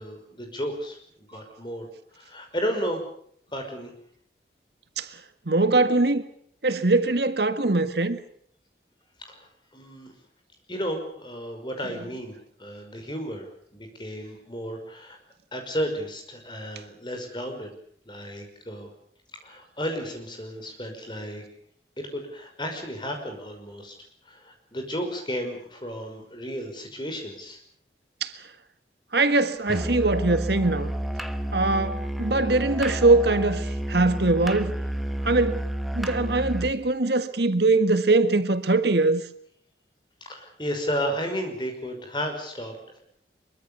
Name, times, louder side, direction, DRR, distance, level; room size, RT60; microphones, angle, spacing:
voice 1, 0.0-1.9 2.1-3.0 3.5-3.9 9.2-9.5 9.7-10.1 10.7-15.2 15.5-17.7 18.1-18.9 19.4-21.4 22.0-23.9 24.2-27.6 40.2-43.0, equal, 25° left, 5.6 m, -33 dB
voice 2, 5.4-6.2 6.6-8.2 28.2-28.3 29.1-30.9 31.5-34.8 35.2-35.6 35.9-39.2, right 2 dB, 70° right, 1.7 m, -22 dB
Musical instrument, 29.7-36.8, equal, ahead, 1.2 m, -30 dB
24.0 x 23.0 x 6.9 m
head